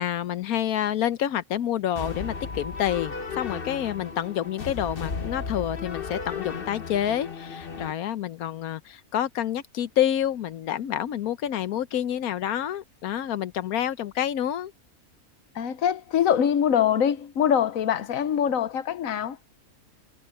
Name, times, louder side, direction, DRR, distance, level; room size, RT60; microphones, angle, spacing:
voice 1, 0.0-14.7, left 10 dB, 85° left, 1.3 m, -28 dB
sound 1, 2.0-7.9, left 5 dB, 40° left, 1.3 m, -35 dB
voice 2, 15.5-19.4, left 9 dB, 70° left, 1.2 m, -23 dB
omnidirectional pair, 1.5 m